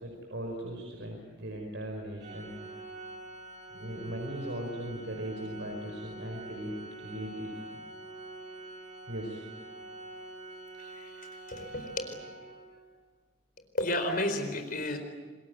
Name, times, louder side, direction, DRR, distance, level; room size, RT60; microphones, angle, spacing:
voice 1, 0.0-2.8 3.7-7.6 9.1-9.4, right 1 dB, 75° right, 1 dB, 5.0 m, -39 dB
Organ, 2.2-12.9, right 2 dB, 40° right, 3.6 m, -46 dB
voice 2, 10.8-12.2 13.7-15.0, left 1 dB, 50° left, 7 dB, 4.5 m, -33 dB
27.5 x 21.0 x 9.7 m, 1.4 s
head